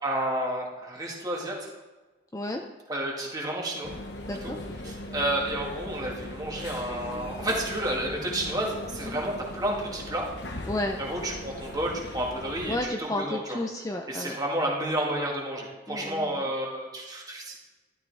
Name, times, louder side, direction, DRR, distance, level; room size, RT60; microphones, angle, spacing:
voice 1, 0.0-1.7 2.9-3.9 4.4-4.5 4.8-10.3 11.0-13.6 14.1-17.6, right 1 dB, 20° right, -2 dB, 2.0 m, -31 dB
voice 2, 2.3-2.6 4.3-4.6 9.0-9.2 10.7-11.0 12.7-14.4 15.9-16.5, left 1 dB, 20° left, 3 dB, 0.6 m, -32 dB
sound 1, 3.8-12.8, left 1 dB, 65° left, 1.2 m, -39 dB
13.0 x 12.0 x 3.5 m, 1.2 s
head